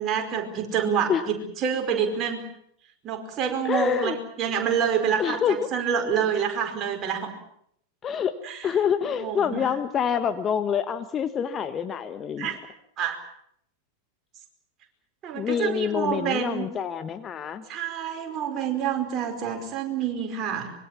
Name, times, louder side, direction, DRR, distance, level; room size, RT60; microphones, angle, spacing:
voice 1, 0.0-2.4 3.0-7.3 8.4-8.7 9.1-9.6 12.4-12.6 13.0-13.2 15.2-16.7 17.7-20.7, right 7 dB, 30° right, 4 dB, 5.0 m, -27 dB
voice 2, 3.6-4.2 5.2-5.6 8.0-8.3 8.6-12.5 15.3-17.6, left 8 dB, 25° left, 10 dB, 1.3 m, -26 dB
25.0 x 22.5 x 7.3 m, 0.69 s
figure-of-eight pair, 90°, 0 cm